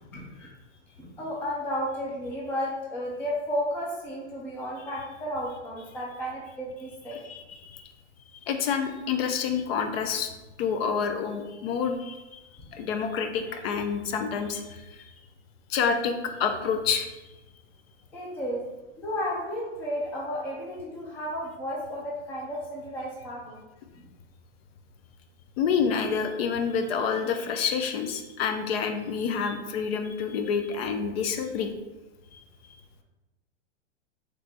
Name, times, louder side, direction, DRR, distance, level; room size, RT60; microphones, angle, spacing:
voice 1, 0.1-0.5 1.0-7.2 12.6-12.7 18.1-18.6 19.0-23.6 23.9-24.0, equal, 5° left, -4 dB, 0.3 m, -33 dB
voice 2, 7.3-7.8 8.5-10.3 10.6-12.4 12.7-15.0 15.7-17.1 25.6-31.7 32.3-32.4, left 6 dB, 55° left, 6 dB, 0.6 m, -28 dB
3.3 x 3.2 x 4.0 m, 1.1 s
hypercardioid pair, 125°, 37 cm